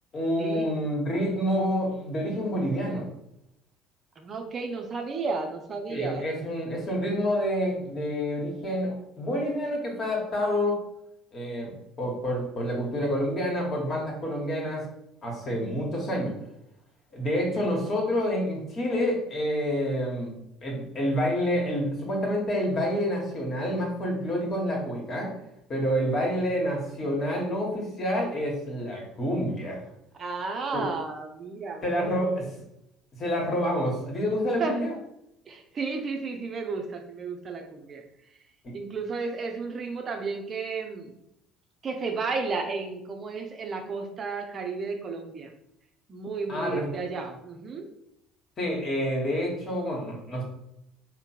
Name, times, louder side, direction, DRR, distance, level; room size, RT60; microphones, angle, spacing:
voice 1, 0.1-3.1 5.9-10.8 11.3-14.9 15.2-16.3 17.1-20.3 20.6-25.3 25.7-29.8 30.7-30.9 31.8-32.5 33.2-34.9 38.6-38.7 46.5-46.9 48.6-50.4, equal, 40° left, -1 dB, 1.4 m, -28 dB
voice 2, 4.2-6.3 30.2-32.4 34.6-34.8 35.5-38.0 38.7-41.1 41.8-45.5 46.1-47.9, right 4 dB, 40° right, 3 dB, 0.6 m, -33 dB
3.6 x 2.1 x 4.3 m, 0.82 s
hypercardioid pair, 60°, 0 cm